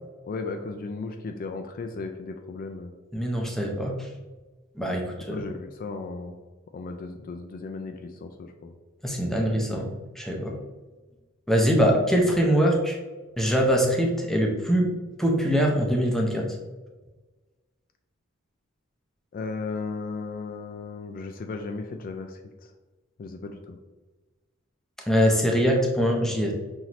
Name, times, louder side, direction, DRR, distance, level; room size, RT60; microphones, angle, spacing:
voice 1, 0.3-2.9 5.3-6.3 6.7-8.7 19.3-22.7 23.2-23.8, left 4 dB, 45° left, 5 dB, 0.3 m, -35 dB
voice 2, 3.1-4.0 4.8-5.4 9.0-9.9 10.2-10.6 11.5-13.0 13.4-14.9 15.2-16.5 25.1-26.5, equal, ahead, 0 dB, 0.6 m, -23 dB
5.7 x 2.6 x 3.0 m, 1.3 s
head